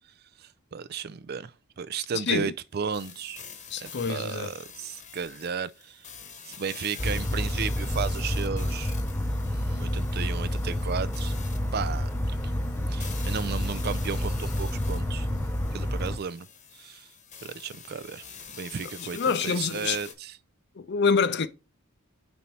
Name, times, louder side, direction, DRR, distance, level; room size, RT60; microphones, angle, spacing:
voice 1, 0.4-1.5 1.8-3.4 3.8-6.1 6.4-8.9 9.5-11.3 11.7-12.4 12.9-15.3 15.7-16.5 16.7-17.1 17.4-18.3 18.5-20.4, right 6 dB, 45° right, 0.4 m, -34 dB
sound 1, 2.9-20.1, left 6 dB, 35° left, 1.0 m, -46 dB
voice 2, 3.7-4.5 19.0-20.0 20.8-21.5, left 5 dB, 50° left, 0.5 m, -26 dB
sound 2, 7.0-16.2, left 1 dB, 10° left, 0.6 m, -29 dB
5.3 x 4.2 x 4.4 m
head